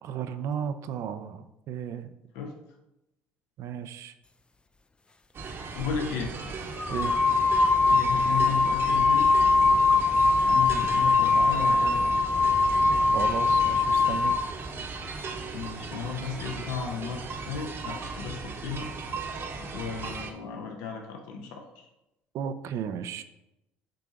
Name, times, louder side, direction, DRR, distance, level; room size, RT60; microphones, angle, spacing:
voice 1, 0.0-2.1 3.6-4.1 6.9-7.1 13.1-14.4 22.3-23.2, right 8 dB, 65° right, 11 dB, 0.5 m, -34 dB
sound 1, 5.3-20.3, right 4 dB, 45° right, 1.0 m, -37 dB
voice 2, 5.8-6.3 7.9-9.3 10.4-12.3 15.5-18.9 19.2-19.4 19.7-21.9, left 6 dB, 80° left, 2 dB, 0.9 m, -35 dB
sound 2, 5.8-6.0 6.8-14.5, left 4 dB, 20° left, 0.4 m, -22 dB
7.6 x 2.8 x 5.0 m, 0.91 s
supercardioid pair, 70°, 6 cm